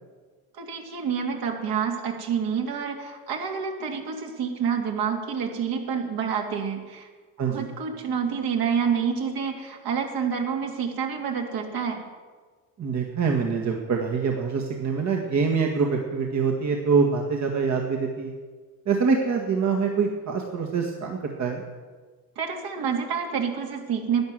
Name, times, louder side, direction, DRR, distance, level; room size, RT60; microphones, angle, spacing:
voice 1, 0.5-7.1 7.5-12.0 22.4-24.3, right 7 dB, 55° right, 2 dB, 2.8 m, -28 dB
voice 2, 12.8-18.3 18.9-21.6, right 5 dB, 40° right, 1 dB, 1.8 m, -25 dB
11.5 x 9.8 x 7.7 m, 1.4 s
supercardioid pair, 85°, 41 cm